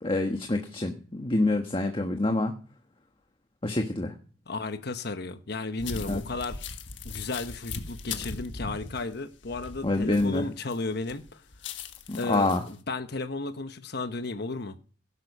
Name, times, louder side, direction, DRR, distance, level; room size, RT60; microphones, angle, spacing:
voice 1, 0.0-2.5 3.6-4.1 6.1-6.2 9.8-10.5 12.1-12.6, left 2 dB, 30° left, 1.4 m, -26 dB
voice 2, 4.5-6.7 7.0-11.4 12.2-14.8, left 3 dB, 60° left, 1.1 m, -34 dB
sound 1, 5.8-10.8 11.1-12.7, left 4 dB, 90° left, 1.5 m, -39 dB
17.5 x 11.0 x 5.5 m
head